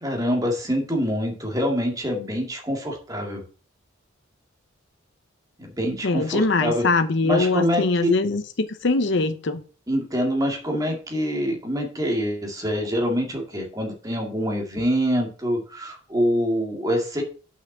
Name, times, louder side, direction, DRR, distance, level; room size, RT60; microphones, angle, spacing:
voice 1, 0.0-3.4 5.6-6.8 7.2-8.1 9.9-17.2, equal, 15° right, 2.0 m, -25 dB
voice 2, 6.0-9.6, left 3 dB, 60° left, 0.7 m, -22 dB
6.0 x 5.8 x 7.1 m
head